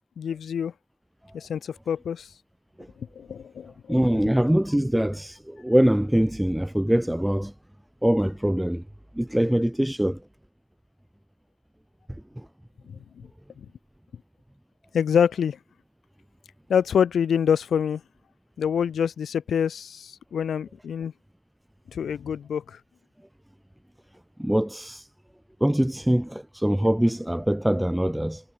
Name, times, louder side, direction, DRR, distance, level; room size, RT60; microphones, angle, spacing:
voice 1, 0.2-0.7 1.3-2.3 3.1-4.0 14.9-15.6 16.7-18.0 18.6-21.1 21.9-22.8, left 8 dB, 80° left, 4.4 m, -25 dB
voice 2, 3.9-7.5 8.0-8.8 9.1-10.2 12.4-12.5 24.4-25.1 25.6-28.4, equal, 5° right, 5.4 m, -23 dB
cardioid pair, 75°, 0 cm